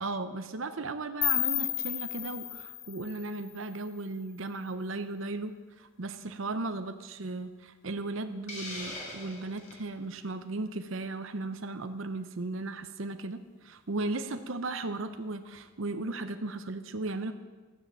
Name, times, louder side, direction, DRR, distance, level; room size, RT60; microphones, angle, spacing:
voice 1, 0.0-17.3, right 2 dB, 70° right, 9 dB, 0.8 m, -36 dB
sound 1, 1.2-4.1, left 13 dB, 60° left, 0.9 m, -33 dB
Hiss, 8.5-9.8, left 1 dB, 35° left, 3.0 m, -41 dB
13.0 x 10.0 x 7.5 m, 1.4 s
head